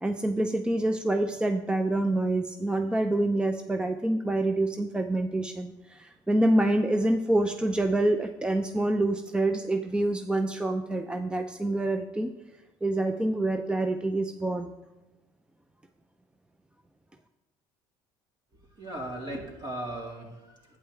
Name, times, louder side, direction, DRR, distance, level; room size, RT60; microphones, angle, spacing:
voice 1, 0.0-12.3 12.8-14.7, right 1 dB, 10° right, 7 dB, 0.6 m, -26 dB
voice 2, 18.8-20.8, right 1 dB, 45° right, -1 dB, 3.5 m, -37 dB
11.5 x 8.9 x 3.5 m, 1.0 s
supercardioid pair, 80°, 11 cm